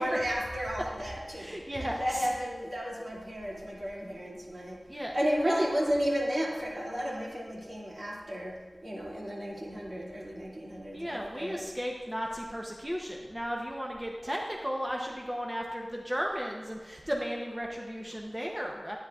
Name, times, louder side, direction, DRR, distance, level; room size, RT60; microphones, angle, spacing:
voice 1, 0.0-4.8 5.1-11.6, equal, 60° right, -5 dB, 2.3 m, -33 dB
voice 2, 1.3-2.3 4.9-5.1 5.4-5.6 10.9-19.0, equal, 15° right, 0 dB, 0.7 m, -35 dB
10.5 x 9.5 x 2.4 m, 1.4 s
wide cardioid pair, 70°, 0 cm